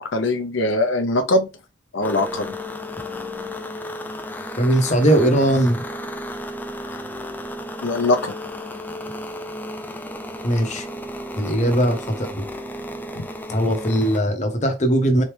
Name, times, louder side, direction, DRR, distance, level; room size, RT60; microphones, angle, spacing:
voice 1, 0.0-1.5 1.9-2.5 6.9-7.0 7.8-8.3, left 2 dB, 80° left, 0.7 m, -21 dB
sound 1, 2.0-14.2, left 1 dB, 10° left, 0.4 m, -33 dB
voice 2, 4.6-5.8 10.4-10.9 11.4-12.4 13.5-15.2, right 1 dB, 40° left, 1.0 m, -19 dB
4.1 x 3.2 x 3.3 m
head